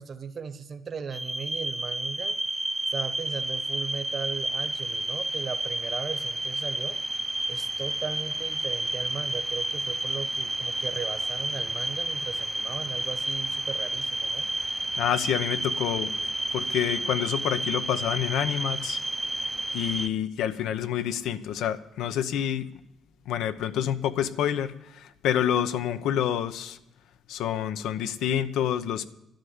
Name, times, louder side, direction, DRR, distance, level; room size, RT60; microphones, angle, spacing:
voice 1, 0.0-2.4 2.9-7.0 7.5-14.5, right 6 dB, 45° right, 1.1 m, -37 dB
sound 1, 1.1-20.1, right 1 dB, 10° right, 0.6 m, -31 dB
voice 2, 15.0-16.2 16.5-19.0 19.7-22.7 23.3-26.8 27.3-29.1, left 10 dB, 85° left, 0.8 m, -28 dB
12.0 x 10.5 x 7.9 m
cardioid pair, 90°, 0 cm